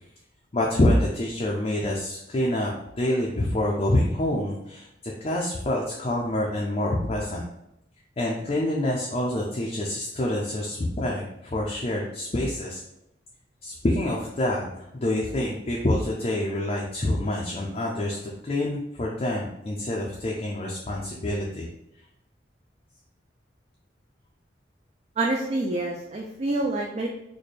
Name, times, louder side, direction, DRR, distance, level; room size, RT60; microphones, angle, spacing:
voice 1, 0.5-2.7 3.0-7.4 8.2-12.8 13.6-14.7 14.9-18.2 18.4-21.7, left 1 dB, 35° left, -2 dB, 0.4 m, -26 dB
voice 2, 25.2-27.1, right 2 dB, 35° right, 0 dB, 0.3 m, -27 dB
4.1 x 2.1 x 3.2 m, 0.84 s
head